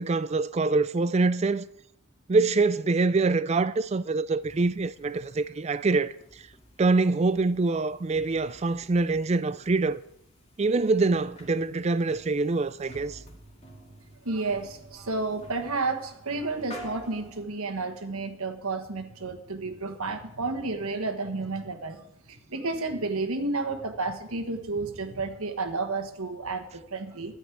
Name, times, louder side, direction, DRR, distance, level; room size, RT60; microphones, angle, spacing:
voice 1, 0.0-1.6 2.3-6.1 6.8-10.0 10.6-13.2, right 3 dB, 30° right, 0.3 m, -25 dB
sound 1, 4.4-17.4, equal, 30° left, 2.2 m, -50 dB
voice 2, 14.2-22.0 22.3-27.4, right 3 dB, 85° right, 1.4 m, -31 dB
13.0 x 5.5 x 9.1 m
head